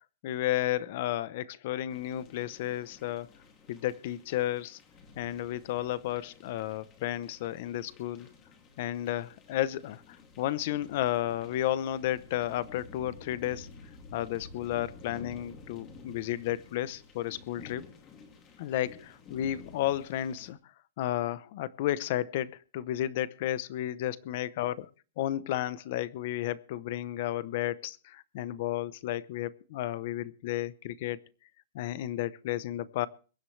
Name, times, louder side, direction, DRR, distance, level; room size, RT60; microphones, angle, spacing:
voice 1, 0.2-3.3 3.7-4.8 5.2-8.3 8.8-13.7 14.1-17.8 18.6-20.6 21.0-24.9 25.2-31.2 31.7-33.1, left 13 dB, 40° left, 18 dB, 0.8 m, -32 dB
sound 1, 1.9-20.5, left 4 dB, 20° left, 2.5 m, -52 dB
22.5 x 11.0 x 3.3 m, 0.37 s
supercardioid pair, 170°, 0 cm